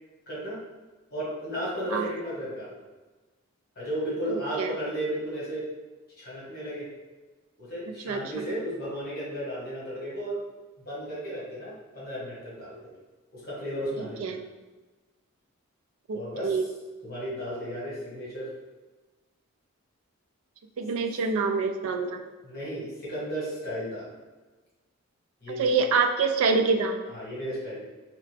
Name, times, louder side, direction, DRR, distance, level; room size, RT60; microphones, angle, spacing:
voice 1, 0.3-0.6 1.1-2.8 3.7-5.7 6.2-6.9 7.6-10.4 10.8-12.9 13.3-14.4 16.1-16.6 17.0-18.5 22.4-24.1 25.4-25.7 27.1-27.9, equal, 45° left, -7 dB, 1.5 m, -34 dB
voice 2, 4.3-4.7 8.1-8.4 14.2-14.4 16.1-16.7 20.8-22.2 25.6-27.0, right 4 dB, 70° right, 5 dB, 0.3 m, -26 dB
3.7 x 3.1 x 3.3 m, 1.2 s
head